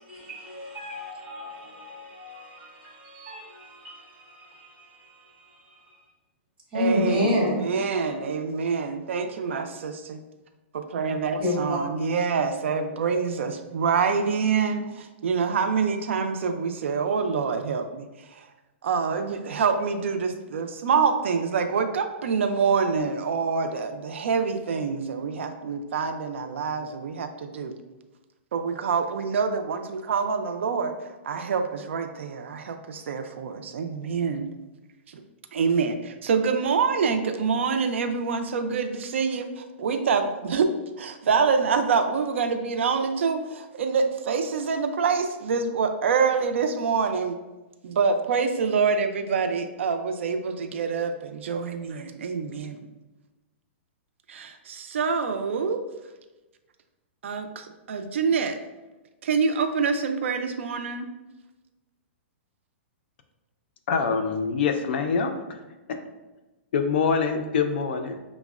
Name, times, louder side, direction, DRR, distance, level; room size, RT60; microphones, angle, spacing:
voice 1, 0.0-6.1 6.7-7.6 11.4-11.8, left 1 dB, 20° right, 1.2 m, -30 dB
voice 2, 6.7-7.3 7.6-10.2 10.7-18.5 18.8-27.7 28.5-34.5 35.1-35.2 35.5-40.7 41.0-47.4 47.8-52.9 54.3-55.8 57.2-58.6 59.2-61.1, right 5 dB, 80° right, 0.3 m, -26 dB
voice 3, 63.9-65.6 65.9-66.0 66.7-68.2, left 5 dB, 60° left, 0.4 m, -25 dB
5.7 x 2.0 x 2.3 m
hypercardioid pair, 155°, 7 cm